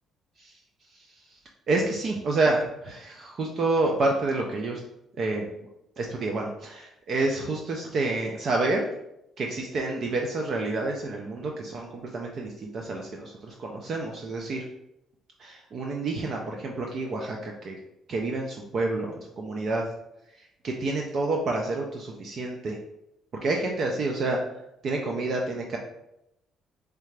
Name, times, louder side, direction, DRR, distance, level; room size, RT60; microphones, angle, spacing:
voice 1, 1.7-4.8 5.2-5.5 6.0-8.9 9.4-14.6 15.4-17.8 18.1-19.8 20.6-22.8 23.4-24.4 24.8-25.8, right 2 dB, 35° right, 0 dB, 0.4 m, -28 dB
3.7 x 3.3 x 3.2 m, 0.85 s
cardioid pair, 175°, 0 cm